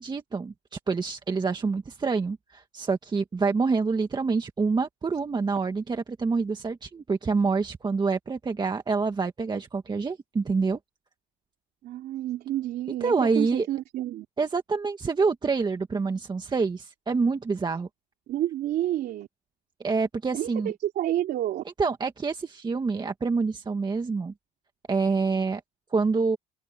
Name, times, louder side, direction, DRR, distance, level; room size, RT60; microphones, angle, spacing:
voice 1, 0.0-10.8 13.0-13.7 14.4-17.9 19.8-20.7 21.8-24.3 24.9-25.6 25.9-26.4, right 4 dB, 25° right, 1.7 m, -27 dB
voice 2, 11.8-14.3 18.3-19.3 20.3-21.6, right 13 dB, 70° right, 3.0 m, -29 dB
open air
cardioid pair, 110°, 17 cm